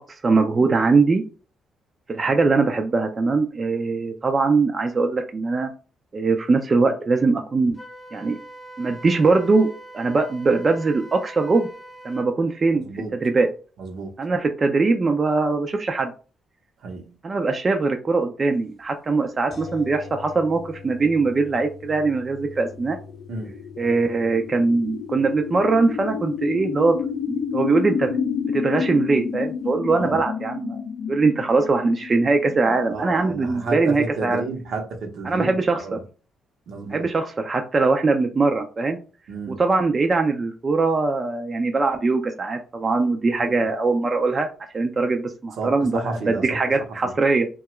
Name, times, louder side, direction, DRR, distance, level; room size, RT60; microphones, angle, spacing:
voice 1, 0.1-1.2 2.1-5.7 6.1-7.8 8.1-8.4 8.8-9.7 9.9-11.7 12.0-13.5 14.2-16.1 17.2-23.0 23.8-27.0 27.3-28.2 28.5-30.8 31.1-34.4 35.2-36.0 36.9-39.0 39.5-44.5 44.7-47.5, right 3 dB, 35° right, 5 dB, 0.4 m, -21 dB
Wind instrument woodwind instrument, 7.8-12.3, right 1 dB, 25° left, 0.5 m, -42 dB
voice 2, 12.7-13.1 13.8-14.1 16.8-17.1 23.3-23.5 29.9-30.2 32.9-36.0 36.7-37.0 39.3-39.6 43.4-43.5 45.6-46.6, right 3 dB, 70° right, 3 dB, 0.8 m, -31 dB
sound 1, 19.5-29.4 29.7-29.8, left 4 dB, 50° left, 0.8 m, -44 dB
sound 2, 22.5-34.6, left 6 dB, 80° left, 0.5 m, -30 dB
2.8 x 2.3 x 3.0 m, 0.37 s
cardioid pair, 90°, 0 cm